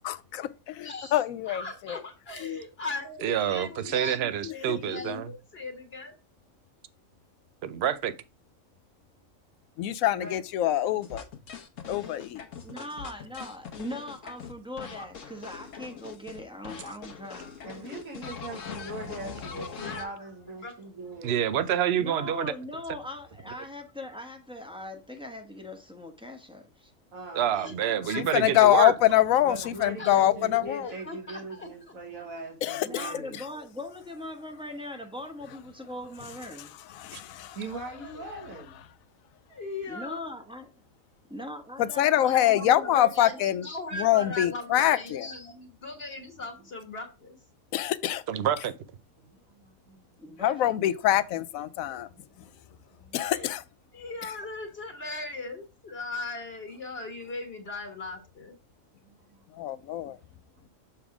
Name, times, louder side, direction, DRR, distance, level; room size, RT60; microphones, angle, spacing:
voice 1, 0.1-1.6 1.9-2.0 2.4-2.6 4.4-4.5 5.0-5.2 9.8-11.2 11.9-12.4 28.2-30.9 32.6-33.1 37.0-37.6 41.8-43.7 43.9-45.3 47.7-48.2 50.4-52.1 53.1-53.6 59.6-60.2, left 13 dB, 90° left, 1.0 m, -24 dB
voice 2, 0.8-6.1 17.9-18.0 18.8-18.9 19.5-20.2 20.6-20.7 27.5-28.4 30.0-31.7 38.0-38.1 39.5-40.2 42.3-47.4 48.0-48.1 53.2-53.5 53.9-58.6, left 3 dB, 50° left, 1.5 m, -39 dB
voice 3, 3.2-5.3 7.6-8.1 21.2-22.5 27.3-28.9 37.1-37.2 48.3-48.7, right 9 dB, 60° right, 0.8 m, -27 dB
sound 1, 11.0-16.4 16.6-20.0, left 6 dB, 70° left, 1.4 m, -42 dB
voice 4, 12.6-17.7 21.9-26.9 32.8-36.7 39.9-40.7 41.3-43.4 50.2-50.7, left 1 dB, 5° right, 1.0 m, -40 dB
voice 5, 17.6-21.5 27.1-28.1 29.4-33.4 37.6-38.8 49.2-50.0 52.1-52.5 52.7-53.3 59.0-59.4 60.0-60.2, right 2 dB, 85° right, 1.9 m, -41 dB
7.1 x 3.5 x 4.8 m
omnidirectional pair, 1.4 m